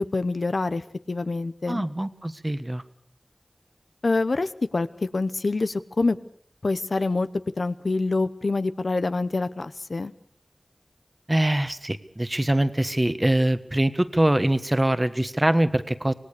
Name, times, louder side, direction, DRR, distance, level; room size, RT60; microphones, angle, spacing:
voice 1, 0.0-1.9 4.0-6.2 6.6-7.3 7.6-10.1, left 3 dB, 75° left, 12 dB, 0.9 m, -26 dB
voice 2, 1.7-2.8 11.3-16.1, right 1 dB, 25° right, 12 dB, 1.4 m, -23 dB
26.0 x 18.0 x 6.8 m, 0.63 s
wide cardioid pair, 40°, 0 cm